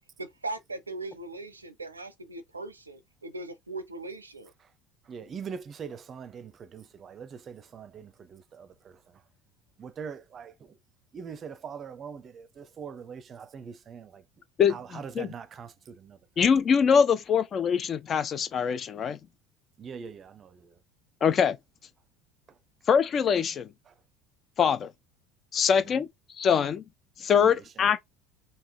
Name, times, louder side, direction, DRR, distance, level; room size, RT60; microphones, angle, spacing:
voice 1, 0.2-4.5, right 2 dB, 85° right, 0.5 m, -39 dB
voice 2, 5.1-9.2 9.8-10.5 11.1-14.2 14.7-16.5 19.8-20.8 23.9-24.0 25.9-26.0 27.3-27.9, right 6 dB, 35° right, 0.6 m, -42 dB
voice 3, 14.6-15.3 16.4-19.2 21.2-21.6 22.9-23.7 24.6-24.9 25.5-26.1 26.4-26.8 27.2-28.0, left 7 dB, 35° left, 0.7 m, -23 dB
3.5 x 2.8 x 4.5 m
figure-of-eight pair, 65°, 0 cm